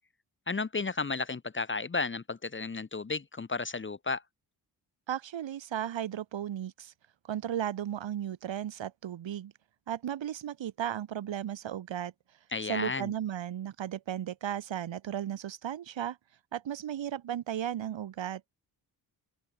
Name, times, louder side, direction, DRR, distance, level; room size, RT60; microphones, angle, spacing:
voice 1, 0.5-4.2 12.5-13.1, left 4 dB, 25° left, 1.1 m, -33 dB
voice 2, 5.1-6.9 7.3-9.5 9.9-12.1 12.6-16.2 16.5-18.4, right 10 dB, 70° right, 2.7 m, -35 dB
open air
supercardioid pair, 55°, 47 cm